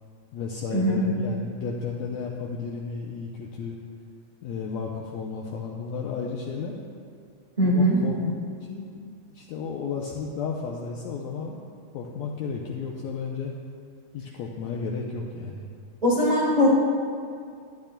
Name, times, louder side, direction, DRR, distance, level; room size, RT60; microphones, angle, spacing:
voice 1, 0.3-3.8 4.4-6.7 7.6-8.1 8.6-11.6 11.9-13.5 14.1-15.7, left 5 dB, 80° left, -1 dB, 1.6 m, -33 dB
voice 2, 7.6-8.0 16.0-16.8, equal, 65° right, -6 dB, 0.4 m, -20 dB
12.0 x 10.5 x 2.2 m, 2.3 s
omnidirectional pair, 3.6 m